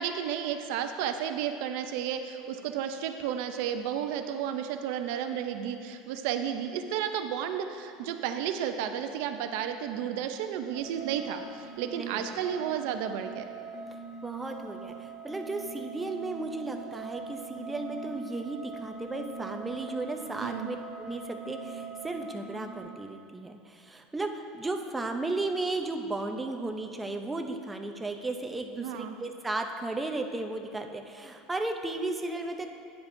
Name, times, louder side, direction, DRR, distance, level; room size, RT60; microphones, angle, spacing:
voice 1, 0.0-13.4 20.4-20.7 28.8-29.2, right 9 dB, 65° right, 7 dB, 0.5 m, -32 dB
sound 1, 10.7-22.8, right 4 dB, 40° left, 1.5 m, -42 dB
voice 2, 12.0-12.4 14.2-32.7, right 2 dB, 10° right, 5 dB, 0.5 m, -35 dB
11.5 x 9.4 x 2.6 m, 2.5 s
supercardioid pair, 150°, 0 cm